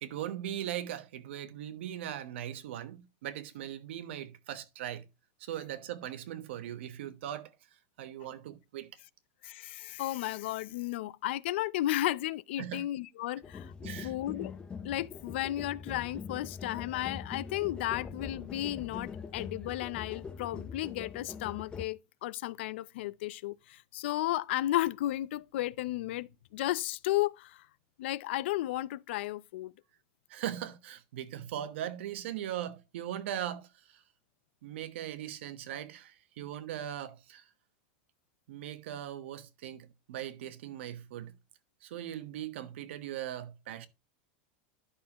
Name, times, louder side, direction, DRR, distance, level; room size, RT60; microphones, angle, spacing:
voice 1, 0.0-5.0 5.4-7.5 8.0-8.9 12.6-12.8 13.8-14.1 30.3-34.0 34.6-37.4 38.5-41.3 41.8-43.9, right 11 dB, 80° right, 1.1 m, -39 dB
voice 2, 9.4-13.7 14.0-14.5 14.8-27.6 28.0-29.7, left 15 dB, 75° left, 0.5 m, -34 dB
Sommersonnenwende Glastonbury Tor, 13.4-21.9, left 6 dB, 15° left, 0.6 m, -43 dB
11.5 x 6.4 x 2.9 m
supercardioid pair, 165°, 6 cm